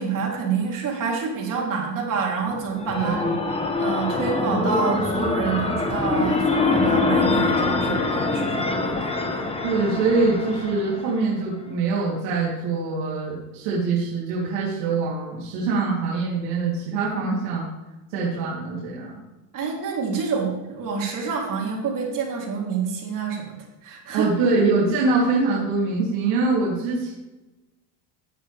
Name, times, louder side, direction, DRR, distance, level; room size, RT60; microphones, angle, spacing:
voice 1, 0.0-3.2 3.8-9.1 19.5-24.3, right 5 dB, 40° right, -1 dB, 3.5 m, -27 dB
sound 1, 2.5-11.3, left 3 dB, 10° left, 1.2 m, -24 dB
voice 2, 3.0-3.3 9.6-17.7 18.1-19.1 24.1-27.1, right 3 dB, 85° right, -6 dB, 3.5 m, -24 dB
15.5 x 9.0 x 3.5 m, 1.1 s
cardioid pair, 135°, 47 cm